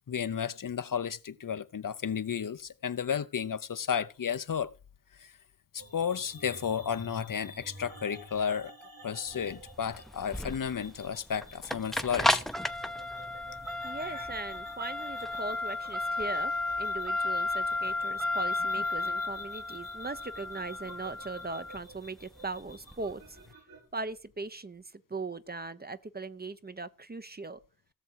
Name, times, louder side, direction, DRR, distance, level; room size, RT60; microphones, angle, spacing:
voice 1, 0.1-4.7 5.2-5.3 5.7-8.7 9.0-12.4 14.1-14.3, left 7 dB, 65° left, 0.7 m, -33 dB
sound 1, 5.8-23.9, left 1 dB, 80° right, 4.7 m, -51 dB
sound 2, 9.3-23.4, left 2 dB, ahead, 0.7 m, -33 dB
voice 2, 13.8-16.5 16.8-23.4 23.9-27.6, right 3 dB, 25° right, 0.7 m, -39 dB
17.0 x 6.9 x 4.6 m
wide cardioid pair, 75°, 35 cm